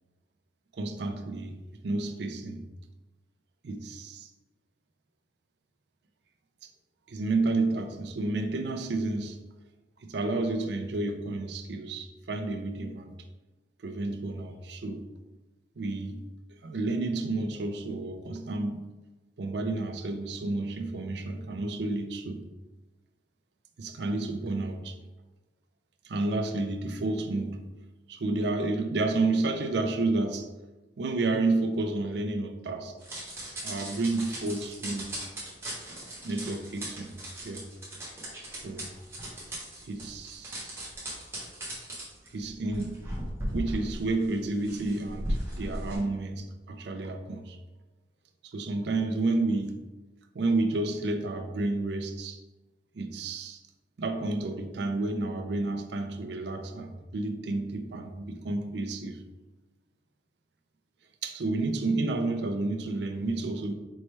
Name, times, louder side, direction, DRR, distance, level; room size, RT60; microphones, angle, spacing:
voice 1, 0.7-1.6 1.8-2.7 3.6-4.3 6.6-6.7 7.1-9.4 10.0-13.2 13.8-15.1 15.8-16.3 16.6-18.8 19.4-22.4 23.8-25.0 26.0-27.6 28.1-30.5 31.0-33.0 33.6-35.1 36.2-37.2 37.4-37.7 38.4-38.9 39.8-40.9 42.3-43.1 43.5-47.6 48.4-49.8 50.3-52.4 52.9-53.6 54.0-59.2 61.2-63.7, right 2 dB, 65° right, 6 dB, 0.4 m, -30 dB
sound 1, 33.0-46.0, right 1 dB, 15° right, 1.1 m, -38 dB
4.4 x 3.1 x 3.3 m, 1.1 s
head